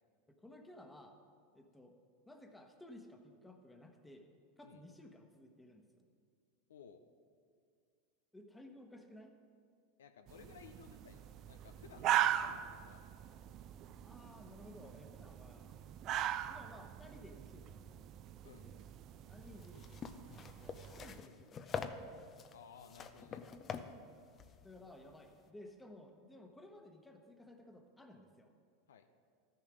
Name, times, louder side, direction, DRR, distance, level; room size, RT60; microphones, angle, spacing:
voice 1, 0.4-1.2 1.5-1.9 2.3-4.3 4.6-6.1 8.3-9.3 14.0-15.7 16.5-18.0 18.4-22.1 23.8-24.1 24.6-28.5, left 1 dB, 10° left, 4 dB, 1.2 m, -57 dB
voice 2, 6.7-7.0 10.0-13.0 18.4-18.7 22.5-23.4 28.9-29.1, left 6 dB, 80° left, 8 dB, 0.6 m, -57 dB
sound 1, 10.3-21.2, right 11 dB, 45° right, 0.4 m, -40 dB
sound 2, 19.4-25.5, left 6 dB, 35° left, 0.6 m, -46 dB
13.5 x 6.8 x 5.1 m, 2.2 s
hypercardioid pair, 95°, 0 cm